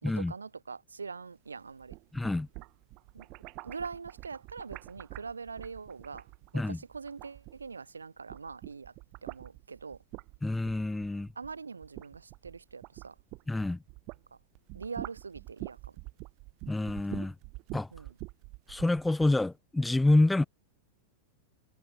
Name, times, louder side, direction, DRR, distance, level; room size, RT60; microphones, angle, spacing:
voice 1, 0.0-2.0 3.1-3.3 3.6-6.3 6.5-8.9 9.2-10.0 11.4-13.2 14.7-16.0 17.9-18.1, right 5 dB, 75° right, 2.0 m, -43 dB
sound 1, 1.7-7.9 8.2-14.3 14.6-19.4, right 26 dB, 40° right, 3.6 m, -46 dB
voice 2, 2.1-2.5 6.5-6.8 10.4-11.3 13.5-13.8 16.7-17.3 17.7-17.9 18.7-20.4, left 2 dB, 5° left, 0.4 m, -27 dB
figure-of-eight pair, 90°, 0 cm